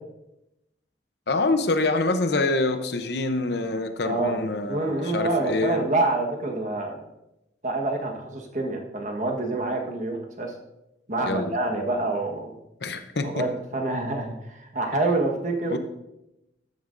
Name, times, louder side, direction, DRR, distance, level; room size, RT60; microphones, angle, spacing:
voice 1, 1.3-5.9 11.2-11.6 12.8-13.5 15.7-15.8, left 2 dB, 65° left, 8 dB, 0.8 m, -26 dB
voice 2, 4.0-4.4 4.7-6.9 7.6-10.5 11.1-12.5 13.2-15.8, right 2 dB, 45° right, 3 dB, 1.3 m, -27 dB
13.0 x 9.3 x 2.6 m, 0.90 s
head